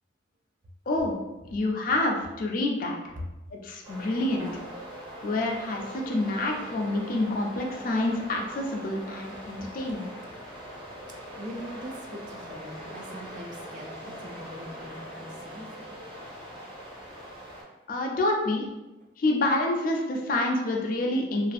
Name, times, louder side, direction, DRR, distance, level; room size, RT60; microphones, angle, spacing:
voice 1, 1.5-3.1 3.5-4.5 5.2-10.1 17.9-18.7 19.2-21.5, left 2 dB, 50° left, 1 dB, 0.4 m, -27 dB
sound 1, 3.8-17.6, equal, 25° right, 0.8 m, -42 dB
voice 2, 11.4-16.0, equal, 45° right, 0 dB, 0.4 m, -42 dB
2.5 x 2.4 x 2.4 m, 0.97 s
head